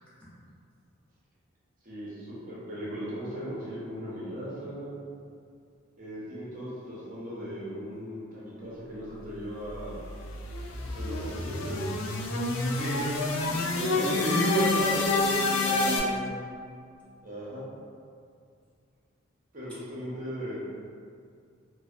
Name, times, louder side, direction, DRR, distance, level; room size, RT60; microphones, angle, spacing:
voice 1, 1.8-4.9 6.0-10.0 10.8-11.9 17.2-17.6 19.5-20.6, equal, 40° right, -7 dB, 0.6 m, -38 dB
sound 1, 9.6-16.0, left 3 dB, 85° left, 0.3 m, -29 dB
voice 2, 12.7-16.2, right 1 dB, 5° left, -11 dB, 0.4 m, -30 dB
2.5 x 2.0 x 2.4 m, 2.3 s
head